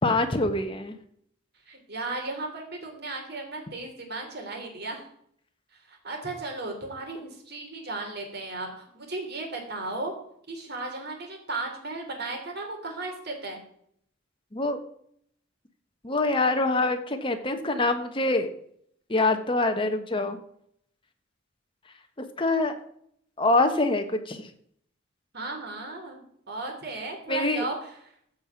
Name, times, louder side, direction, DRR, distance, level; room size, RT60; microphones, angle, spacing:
voice 1, 0.0-1.0 14.5-14.8 16.0-18.5 19.1-20.4 22.4-22.8 23.4-24.4 27.3-27.7, left 2 dB, 25° left, 6 dB, 1.3 m, -25 dB
voice 2, 1.7-5.0 5.9-10.1 10.5-13.6 25.3-27.7, right 2 dB, 55° right, 3 dB, 3.3 m, -35 dB
15.0 x 5.6 x 5.9 m, 0.67 s
head